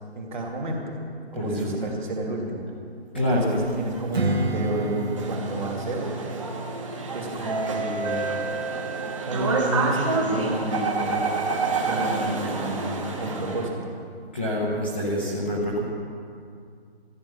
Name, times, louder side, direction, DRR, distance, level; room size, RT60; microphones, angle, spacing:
voice 1, 0.1-1.0 1.3-2.7 3.1-6.1 7.1-8.2 9.3-11.5 11.8-14.0, right 1 dB, 45° right, 0 dB, 2.8 m, -31 dB
voice 2, 1.3-1.9 3.1-3.6 14.3-15.8, equal, 10° left, -8 dB, 0.7 m, -26 dB
sound 1, 3.3-13.7, right 3 dB, 30° right, 1.4 m, -28 dB
Strum, 4.1-9.4, right 1 dB, 75° right, 1.4 m, -31 dB
14.0 x 10.5 x 7.0 m, 2.3 s
figure-of-eight pair, 165°, 32 cm